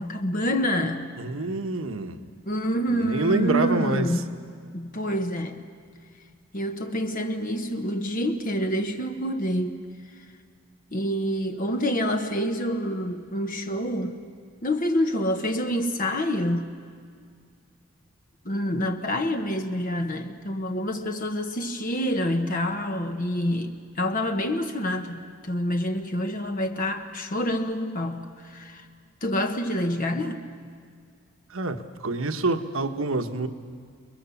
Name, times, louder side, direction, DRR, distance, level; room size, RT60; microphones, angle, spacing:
voice 1, 0.0-1.1 2.5-4.3 4.7-5.7 6.5-9.8 10.9-14.2 14.6-16.7 18.4-28.9 29.2-30.4, equal, 40° left, 6 dB, 1.1 m, -27 dB
voice 2, 1.2-2.2 2.9-4.1 31.5-33.5, right 2 dB, 75° right, 7 dB, 1.3 m, -26 dB
29.5 x 21.5 x 7.2 m, 2.1 s
head